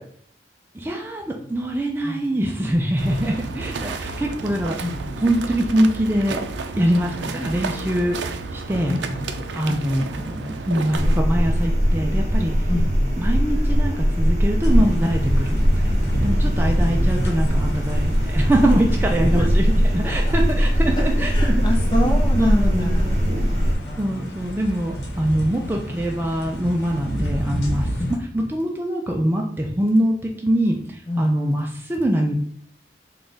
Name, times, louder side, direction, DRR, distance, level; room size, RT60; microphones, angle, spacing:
voice 1, 0.7-4.8 5.2-6.4 6.8-8.2 8.5-9.0 9.5-12.7 13.2-21.6 22.0-23.2 24.0-27.9 28.3-32.4, right 1 dB, 10° right, 0 dB, 0.3 m, -23 dB
sound 1, 3.0-11.2, right 3 dB, 85° right, 0.4 m, -31 dB
voice 2, 4.8-5.2 6.9-7.5 8.9-9.3 9.7-10.1 11.0-11.2 12.7-13.1 14.8-14.9 16.3-17.2 19.3-19.4 20.0-20.3 21.3-23.2 23.5-24.4 25.6-25.8 28.0-28.1 31.1-31.3 31.5-31.6, left 1 dB, 25° left, 1 dB, 0.6 m, -28 dB
sound 2, 10.9-23.7, equal, 40° right, 1.0 m, -20 dB
sound 3, 14.6-28.2, equal, 75° left, 1.0 m, -30 dB
3.8 x 2.3 x 3.8 m, 0.63 s
head